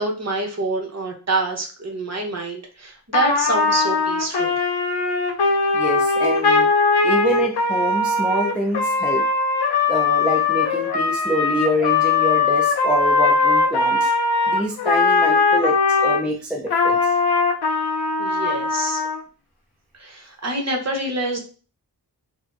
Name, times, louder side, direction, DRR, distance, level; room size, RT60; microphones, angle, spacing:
voice 1, 0.0-4.6 18.2-19.0 19.9-21.4, right 2 dB, 40° right, 1 dB, 0.9 m, -26 dB
Trumpet, 3.1-16.2 16.7-19.2, left 4 dB, 70° left, 0.7 m, -20 dB
voice 2, 5.7-6.7 7.0-9.2 9.9-14.1 14.5-17.1, equal, 5° right, 1 dB, 0.4 m, -26 dB
4.1 x 2.1 x 2.5 m, 0.35 s
wide cardioid pair, 115°, 40 cm